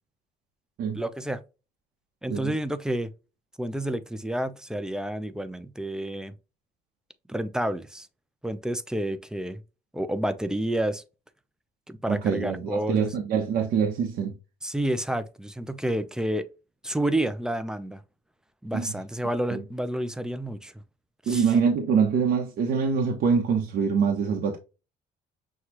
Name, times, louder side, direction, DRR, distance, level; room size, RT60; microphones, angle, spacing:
voice 1, 0.9-1.4 2.2-3.1 3.6-6.3 7.3-8.1 8.4-9.6 9.9-11.0 11.9-13.1 14.6-16.5 16.8-18.0 18.6-20.7 21.2-21.4, right 1 dB, 5° right, 0.5 m, -29 dB
voice 2, 12.1-14.3 18.7-18.9 19.5-19.6 21.3-24.6, right 6 dB, 70° right, 0.9 m, -24 dB
6.3 x 2.3 x 2.9 m
cardioid pair, 110°, 17 cm